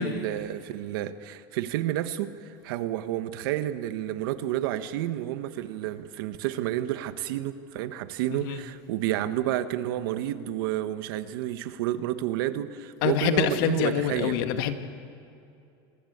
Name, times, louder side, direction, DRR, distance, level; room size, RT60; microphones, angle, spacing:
voice 1, 0.0-14.4, right 13 dB, 80° right, 10 dB, 1.4 m, -30 dB
voice 2, 8.3-8.6 13.0-14.7, left 9 dB, 70° left, 7 dB, 2.0 m, -26 dB
26.5 x 21.0 x 8.1 m, 2.6 s
supercardioid pair, 140°, 12 cm